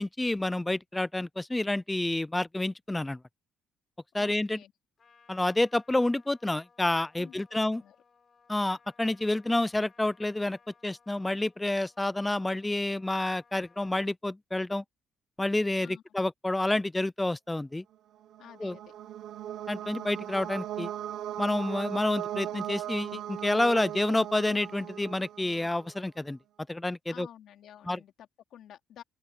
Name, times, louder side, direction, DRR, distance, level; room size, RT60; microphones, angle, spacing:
voice 1, 0.0-3.2 4.1-4.6 5.3-7.8 8.5-14.8 15.4-17.8 18.6-18.8 19.7-20.9 21.4-26.4 26.7-27.3 27.9-28.0, left 2 dB, 10° left, 0.3 m, -29 dB
voice 2, 4.2-4.7 7.2-8.0 15.8-16.2 18.4-18.9 27.1-29.0, left 10 dB, 60° left, 3.0 m, -52 dB
Trumpet, 5.0-14.1, left 5 dB, 30° left, 6.2 m, -63 dB
sound 1, 18.2-26.0, right 11 dB, 65° right, 1.0 m, -38 dB
open air
cardioid pair, 155°, 0 cm